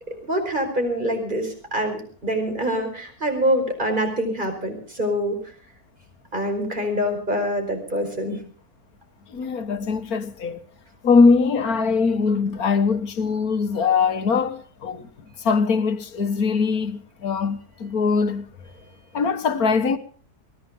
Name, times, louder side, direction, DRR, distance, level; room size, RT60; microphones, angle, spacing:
voice 1, 0.1-5.4 6.3-8.4, equal, 30° right, 5.2 m, -25 dB
voice 2, 9.3-10.6 11.0-15.1 15.4-18.5 19.1-20.0, left 5 dB, 65° left, 1.8 m, -21 dB
22.5 x 16.0 x 3.7 m
omnidirectional pair, 1.7 m